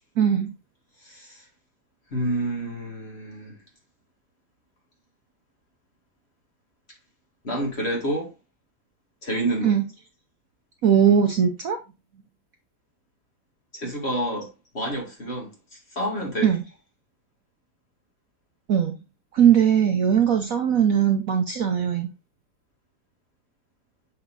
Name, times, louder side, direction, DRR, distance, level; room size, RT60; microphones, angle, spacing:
voice 1, 0.2-0.5 9.6-9.8 10.8-11.8 16.4-16.6 18.7-19.0 19.3-22.1, right 8 dB, 60° right, 1.0 m, -20 dB
voice 2, 1.0-1.4 2.1-3.6 7.4-8.3 9.2-9.7 13.7-14.5 14.7-16.5, right 1 dB, 35° left, 2.3 m, -29 dB
7.0 x 5.7 x 2.6 m
omnidirectional pair, 2.0 m